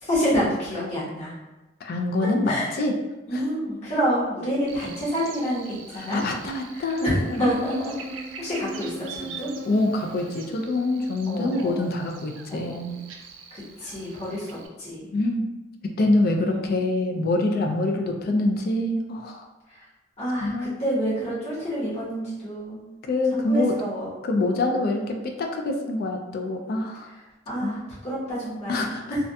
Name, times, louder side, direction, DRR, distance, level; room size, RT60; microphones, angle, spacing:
voice 1, 0.0-1.3 2.2-2.7 3.3-6.2 6.7-7.1 7.4-7.9 8.4-9.5 11.3-11.9 12.5-13.0 13.5-15.1 16.4-16.8 19.7-19.8 20.2-22.8 23.3-24.1 27.5-29.2, equal, 35° left, -10 dB, 0.9 m, -28 dB
voice 2, 1.8-2.9 3.3-3.4 6.0-7.4 9.7-13.0 15.1-15.5 15.8-19.4 20.4-20.8 23.0-23.8 24.2-27.1 27.6-27.8 28.7-29.1, left 2 dB, 50° left, 2 dB, 0.3 m, -25 dB
Buzz, 4.7-14.7, right 3 dB, 75° right, 0.3 m, -40 dB
2.4 x 2.2 x 2.6 m, 1.1 s
head